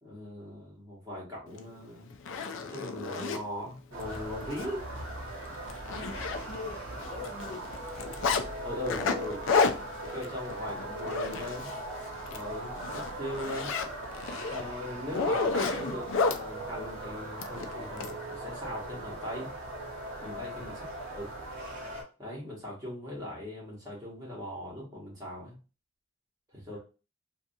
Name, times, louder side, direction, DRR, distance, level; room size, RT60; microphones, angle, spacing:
voice 1, 0.0-2.1 2.6-4.9 8.6-9.5 10.0-11.7 12.3-13.8 14.5-19.5 20.2-20.9 21.1-21.3 22.2-25.6 26.5-26.8, left 1 dB, 15° right, -5 dB, 1.1 m, -39 dB
Zipper (clothing), 1.6-1.7 2.1-3.4 4.0-4.2 4.5-4.7 5.0-5.1 5.5-6.8 7.0-8.4 8.9-11.8 12.2-12.4 12.8-16.4 17.4-18.1, left 4 dB, 60° left, 0.4 m, -31 dB
sound 1, 3.9-22.0, right 2 dB, 65° right, 0.9 m, -40 dB
voice 2, 5.9-6.2 6.5-7.7 20.2-20.5, left 4 dB, 25° left, -5 dB, 0.8 m, -43 dB
2.7 x 2.4 x 2.6 m, 0.33 s
head